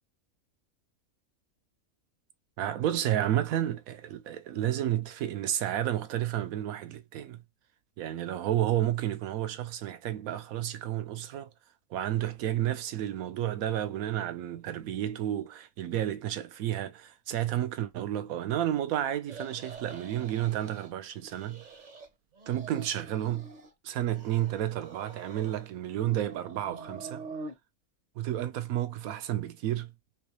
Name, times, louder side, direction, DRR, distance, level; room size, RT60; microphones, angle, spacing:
voice 1, 2.6-7.4 8.0-11.5 11.9-21.6 22.5-23.5 23.8-27.2 28.2-29.9, right 12 dB, 75° right, 1.0 m, -31 dB
sound 1, 19.2-20.9 21.2-22.1 22.3-23.7 24.1-25.7 26.0-27.6, right 3 dB, 40° right, 0.7 m, -46 dB
3.3 x 3.1 x 3.0 m
omnidirectional pair, 1.5 m